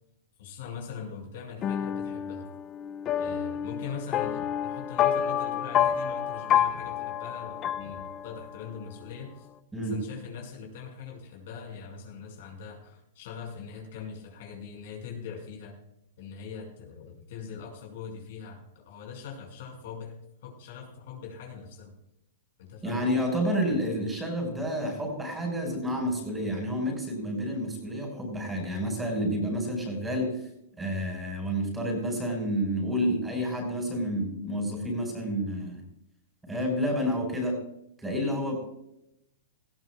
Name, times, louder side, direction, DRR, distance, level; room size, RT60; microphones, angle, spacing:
voice 1, 0.4-2.5 3.2-9.5 9.8-15.8 16.2-20.2 20.4-21.9 22.6-23.3 23.7-23.8, left 6 dB, 60° left, 1 dB, 5.7 m, -42 dB
sound 1, 1.6-8.6, left 9 dB, 25° left, 0.6 m, -29 dB
voice 2, 22.8-30.4 30.8-35.8 36.5-37.6 38.0-38.6, equal, 10° right, 1 dB, 5.3 m, -29 dB
19.0 x 14.5 x 2.4 m, 0.81 s
hypercardioid pair, 140°, 0 cm